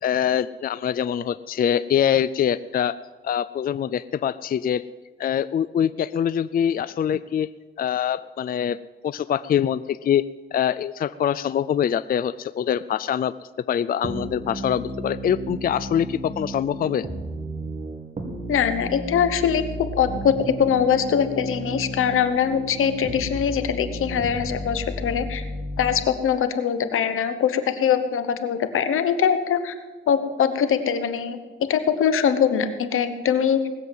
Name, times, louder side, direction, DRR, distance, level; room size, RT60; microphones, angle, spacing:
voice 1, 0.0-3.0 3.2-4.8 5.2-7.5 7.8-8.8 9.0-10.2 10.5-13.3 13.7-17.1, left 9 dB, 45° left, 16 dB, 0.4 m, -24 dB
sound 1, 14.0-26.0, right 1 dB, 35° right, 2.4 m, -33 dB
voice 2, 18.5-25.5 25.8-29.7 30.1-31.4 31.7-33.7, left 8 dB, 90° left, 10 dB, 1.1 m, -22 dB
19.0 x 7.6 x 7.5 m, 1.3 s
cardioid pair, 95°, 21 cm